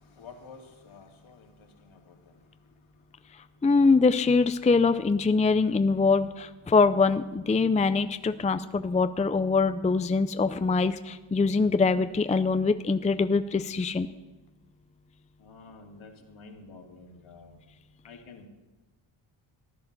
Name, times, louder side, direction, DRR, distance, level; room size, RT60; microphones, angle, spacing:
voice 1, 0.1-2.3 15.4-17.6 18.0-18.5, left 4 dB, 70° left, 1 dB, 2.9 m, -50 dB
voice 2, 3.6-6.3 6.7-10.9 11.3-14.1, left 4 dB, 15° left, 11 dB, 0.5 m, -23 dB
15.0 x 10.5 x 6.9 m, 1.1 s
cardioid pair, 75°, 50 cm